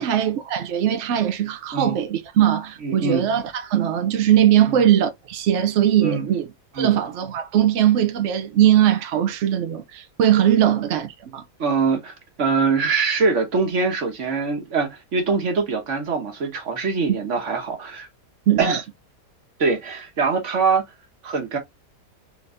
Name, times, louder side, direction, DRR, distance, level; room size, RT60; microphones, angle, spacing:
voice 1, 0.0-6.4 6.8-11.4 18.5-18.8, right 10 dB, 70° right, 0.6 m, -20 dB
voice 2, 2.8-3.3 4.7-4.8 6.0-6.3 6.7-6.9 11.6-18.1 18.6-18.8 19.6-20.8 21.2-21.6, right 4 dB, 45° right, 1.4 m, -23 dB
3.9 x 3.4 x 2.5 m
omnidirectional pair, 1.9 m